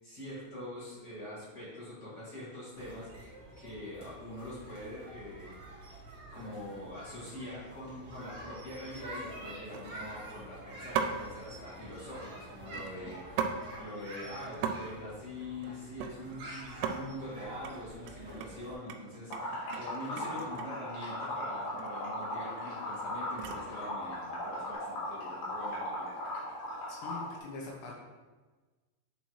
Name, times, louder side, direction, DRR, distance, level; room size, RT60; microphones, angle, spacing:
voice 1, 0.0-5.5 6.3-26.2, left 1 dB, 35° left, -10 dB, 1.1 m, -44 dB
sound 1, 2.7-18.7, right 1 dB, 55° right, 1.2 m, -48 dB
sound 2, 6.7-7.0 7.5-7.8 8.1-8.2 8.6-8.9 9.7-10.3 11.0-11.3 12.6-13.6 13.9-14.0 14.3-14.8 15.0-16.4 16.7-17.0 17.4-17.7 18.1-20.8 21.7-21.9 22.2-23.8 24.4-24.7, right 7 dB, 85° right, 2.9 m, -38 dB
Liquid, 19.3-27.3, left 1 dB, 65° left, 3.7 m, -37 dB
voice 2, 26.9-28.0, left 3 dB, 80° left, -1 dB, 2.9 m, -43 dB
10.0 x 4.1 x 3.2 m, 1.3 s
omnidirectional pair, 5.3 m